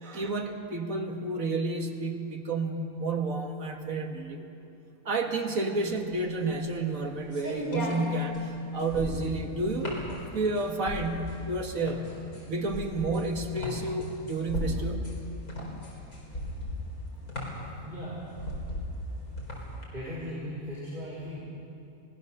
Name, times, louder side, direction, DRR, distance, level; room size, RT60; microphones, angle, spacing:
voice 1, 0.0-4.5 5.1-10.0 10.3-12.2 12.5-15.1, right 2 dB, 70° right, 3 dB, 2.2 m, -30 dB
sound 1, 6.0-19.8, left 1 dB, 80° left, 4.8 m, -37 dB
voice 2, 17.8-18.2 19.9-21.4, equal, 35° right, -8 dB, 5.5 m, -37 dB
24.5 x 19.0 x 6.8 m, 2.7 s
omnidirectional pair, 1.5 m